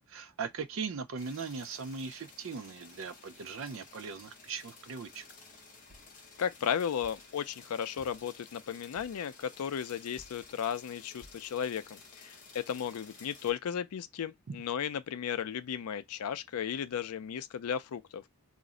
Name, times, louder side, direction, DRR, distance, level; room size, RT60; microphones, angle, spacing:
voice 1, 0.1-5.2 14.5-14.6, right 5 dB, 60° right, 0.4 m, -39 dB
sound 1, 1.2-13.5, left 4 dB, 35° left, 0.6 m, -54 dB
sound 2, 5.9-6.2 7.0-7.3 8.0-8.4 9.0-9.3 10.2-10.5 11.2-11.5 12.1-12.2 12.4-12.5, left 1 dB, 85° right, 0.9 m, -58 dB
voice 2, 6.4-18.2, left 8 dB, 90° left, 0.4 m, -35 dB
2.5 x 2.1 x 3.6 m
head